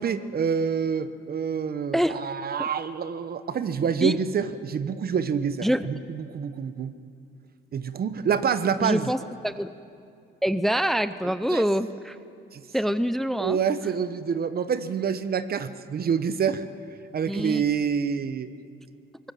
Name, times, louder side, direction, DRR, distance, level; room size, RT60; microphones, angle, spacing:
voice 1, 0.0-6.9 7.7-9.1 11.5-11.6 12.5-12.6 13.3-16.6 17.1-18.5, right 7 dB, 50° right, 12 dB, 1.0 m, -27 dB
voice 2, 8.8-9.7 10.4-12.2 12.7-13.6 17.3-17.6, equal, ahead, 13 dB, 0.6 m, -25 dB
23.0 x 19.0 x 7.6 m, 2.4 s
cardioid pair, 90°, 20 cm